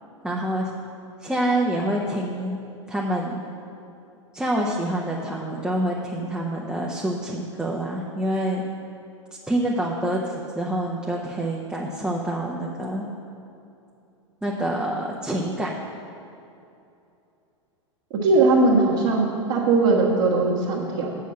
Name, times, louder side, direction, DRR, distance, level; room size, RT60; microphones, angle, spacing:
voice 1, 0.2-0.7 1.2-2.6 2.9-3.4 4.3-8.6 9.5-13.0 14.4-15.7, right 1 dB, 5° right, -4 dB, 0.8 m, -26 dB
voice 2, 18.1-21.1, right 3 dB, 50° right, -5 dB, 1.5 m, -19 dB
7.3 x 5.8 x 7.4 m, 2.7 s
figure-of-eight pair, 95°, 16 cm